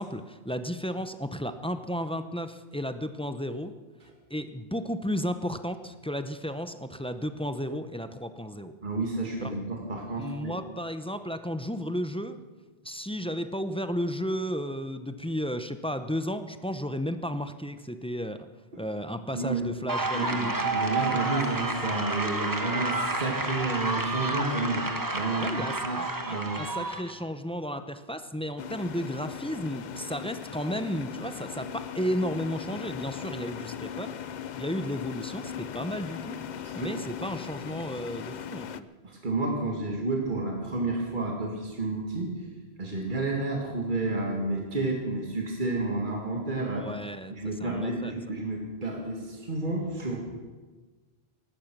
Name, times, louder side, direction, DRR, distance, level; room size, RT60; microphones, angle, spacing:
voice 1, 0.0-3.7 4.3-8.7 9.4-9.5 10.2-12.4 12.8-18.5 18.8-20.8 25.4-34.1 34.6-36.4 36.7-38.9 46.7-47.3 47.6-48.1, equal, 5° left, 9 dB, 0.5 m, -33 dB
voice 2, 8.8-10.5 19.3-19.6 20.1-24.9 25.1-26.6 36.6-37.0 39.0-42.4 42.8-46.9 47.3-50.2, right 2 dB, 50° right, -1 dB, 2.3 m, -30 dB
sound 1, 19.9-27.1, right 2 dB, 20° right, 1.1 m, -30 dB
sound 2, 28.6-38.8, left 8 dB, 55° left, 0.6 m, -39 dB
16.5 x 12.0 x 6.1 m, 1.3 s
omnidirectional pair, 1.1 m